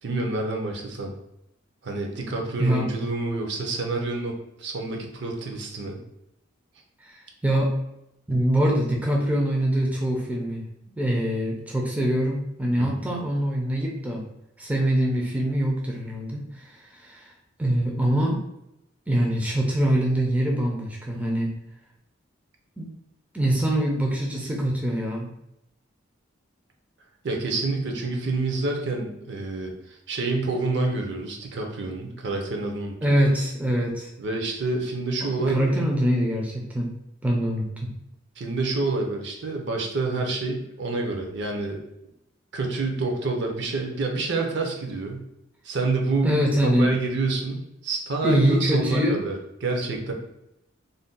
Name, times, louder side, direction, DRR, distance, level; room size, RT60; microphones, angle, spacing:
voice 1, 0.0-1.1 1.8-6.0 12.8-13.0 27.2-33.3 34.2-35.7 38.4-41.8 42.5-45.2 45.6-49.4 49.6-50.1, right 3 dB, 60° right, 2 dB, 0.5 m, -28 dB
voice 2, 2.6-2.9 7.0-7.7 8.3-10.6 11.0-14.2 14.6-17.3 17.6-18.4 19.1-21.5 22.8-22.9 23.3-25.3 33.0-34.1 35.2-36.9 37.2-37.9 46.2-46.9 48.2-49.2, right 1 dB, 5° right, -2 dB, 0.4 m, -24 dB
2.5 x 2.1 x 3.7 m, 0.84 s
head